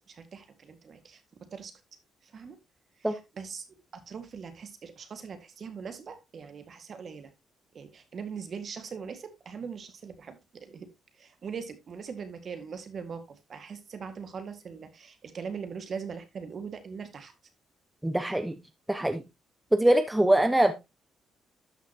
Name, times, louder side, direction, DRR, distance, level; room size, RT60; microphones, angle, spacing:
voice 1, 0.1-1.2 1.5-1.7 2.2-2.6 3.0-3.7 3.9-7.3 7.7-10.9 11.2-17.3, right 6 dB, 50° right, 9 dB, 1.8 m, -41 dB
voice 2, 18.0-18.6 18.9-19.2 19.7-20.7, right 1 dB, 10° right, 8 dB, 0.9 m, -23 dB
12.5 x 5.9 x 2.9 m, 0.22 s
cardioid pair, 90°, 0 cm